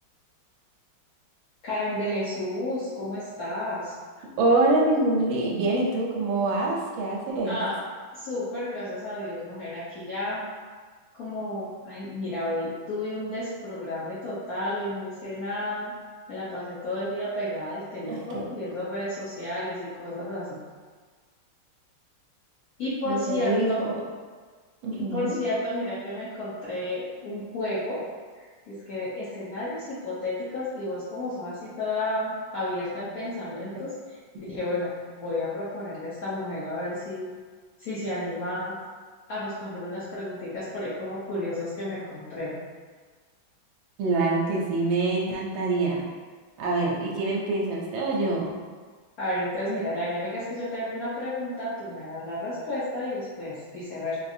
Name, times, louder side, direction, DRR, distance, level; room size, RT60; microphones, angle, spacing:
voice 1, 1.6-3.9 7.4-7.8 8.1-10.4 11.1-15.9 16.3-20.6 22.8-23.8 25.0-28.0 28.3-37.3 37.8-38.8 39.3-42.6 49.2-54.2, left 1 dB, 65° left, -9 dB, 0.9 m, -32 dB
voice 2, 4.4-7.6 18.1-18.4 23.1-24.0 24.8-25.4 44.0-46.0 46.6-48.6, right 2 dB, 80° right, -2 dB, 1.4 m, -25 dB
4.1 x 2.4 x 2.6 m, 1.5 s
omnidirectional pair, 2.2 m